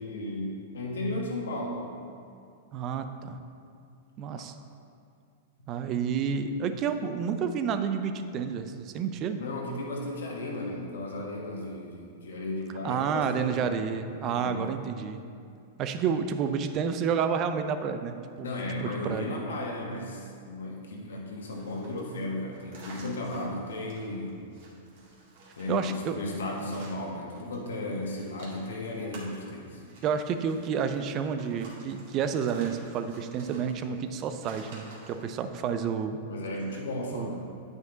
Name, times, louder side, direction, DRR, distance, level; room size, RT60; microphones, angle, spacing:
voice 1, 0.0-1.9 9.4-13.7 14.3-14.8 18.4-24.5 25.6-29.8 36.3-37.3, left 1 dB, 80° left, -1 dB, 1.5 m, -35 dB
voice 2, 2.7-3.4 4.2-4.5 5.7-9.4 12.8-15.2 15.8-18.5 18.8-19.5 25.7-26.2 30.0-36.2 37.1-37.3, right 7 dB, 40° right, 9 dB, 0.5 m, -30 dB
sound 1, 21.4-27.6 27.8-35.3, right 2 dB, 60° right, 2.0 m, -52 dB
9.3 x 5.3 x 3.9 m, 2.4 s
hypercardioid pair, 115°, 0 cm